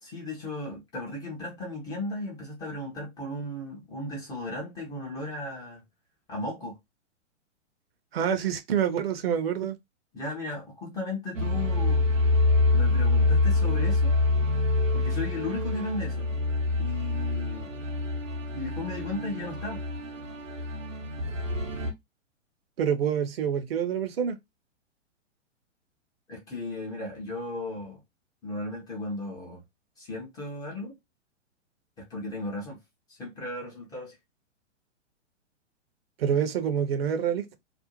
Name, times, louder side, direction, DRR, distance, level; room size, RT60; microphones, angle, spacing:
voice 1, 0.0-5.8 6.3-6.8 10.1-12.3 12.7-14.2 14.9-16.3 16.8-17.7 18.5-19.8 26.3-28.0 28.4-29.6 30.0-31.0 32.0-32.8 33.1-34.2, left 2 dB, 10° left, 0.4 m, -35 dB
voice 2, 8.1-9.8 22.8-24.4 36.2-37.6, right 8 dB, 55° right, 0.6 m, -27 dB
sound 1, 11.3-21.9, left 2 dB, 85° right, 0.8 m, -26 dB
2.5 x 2.0 x 2.9 m
figure-of-eight pair, 110°, 37 cm